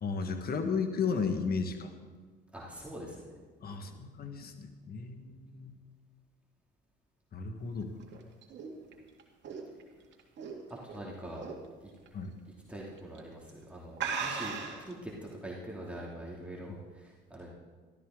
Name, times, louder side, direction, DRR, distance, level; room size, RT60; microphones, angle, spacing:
voice 1, 0.0-1.9 3.6-5.7 7.3-7.9 12.1-12.3, left 5 dB, 50° left, 7 dB, 1.5 m, -34 dB
voice 2, 2.5-3.2 3.7-4.1 10.7-11.5 11.8-11.9 12.7-17.5, right 1 dB, 5° right, -4 dB, 2.6 m, -44 dB
sound 1, 7.8-11.0 11.4-11.7 12.1-12.2 13.0-13.2 13.5-13.6 14.0-14.9, right 5 dB, 60° right, 2.1 m, -37 dB
14.0 x 12.5 x 3.8 m, 1.4 s
supercardioid pair, 75°, 21 cm